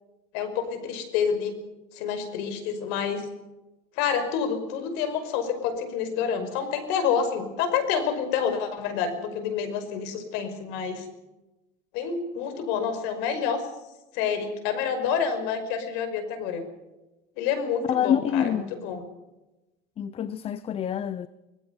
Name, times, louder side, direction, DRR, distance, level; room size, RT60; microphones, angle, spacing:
voice 1, 0.3-1.5 1.9-3.3 4.0-11.1 11.9-13.6 14.1-16.6 17.4-19.0, left 7 dB, 80° left, 5.4 m, -28 dB
voice 2, 17.9-18.7 20.0-21.3, left 9 dB, 35° left, 0.7 m, -26 dB
25.0 x 19.5 x 5.4 m
cardioid pair, 140°, 18 cm